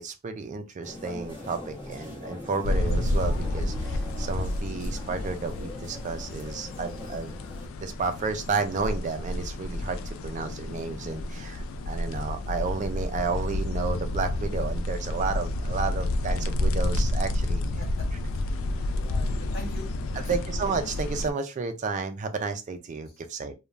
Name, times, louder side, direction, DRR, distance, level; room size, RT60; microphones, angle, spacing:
voice 1, 0.0-7.3 7.8-17.6 20.3-23.5, right 4 dB, 35° right, 0.4 m, -32 dB
sound 1, 0.8-7.7, left 1 dB, 25° left, 0.9 m, -42 dB
sound 2, 2.6-21.3, left 1 dB, 70° left, 0.3 m, -30 dB
voice 2, 17.6-18.5 18.9-20.4 23.0-23.2, left 1 dB, 50° left, 1.2 m, -44 dB
3.1 x 2.2 x 2.4 m
head